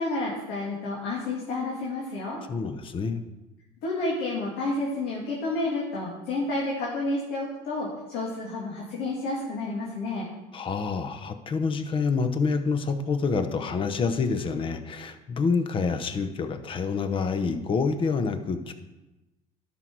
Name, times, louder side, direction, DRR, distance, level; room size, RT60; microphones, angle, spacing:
voice 1, 0.0-2.4 3.8-10.3, left 2 dB, 75° left, -4 dB, 2.3 m, -30 dB
voice 2, 2.5-3.2 10.5-18.7, left 4 dB, 35° left, 9 dB, 0.9 m, -27 dB
12.0 x 6.2 x 4.7 m, 1.0 s
cardioid pair, 115°, 16 cm